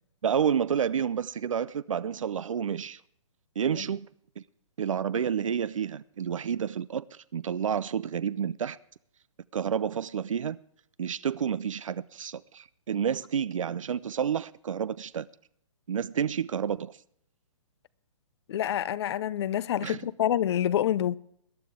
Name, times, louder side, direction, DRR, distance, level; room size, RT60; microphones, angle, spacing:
voice 1, 0.2-3.0 3.6-4.1 4.4-4.5 4.8-8.8 9.5-10.6 11.0-15.3 15.9-17.0 19.8-20.1, right 8 dB, 75° right, 0.5 m, -30 dB
voice 2, 18.5-21.1, left 11 dB, 55° left, 0.5 m, -27 dB
21.5 x 10.0 x 3.6 m
hypercardioid pair, 130°, 17 cm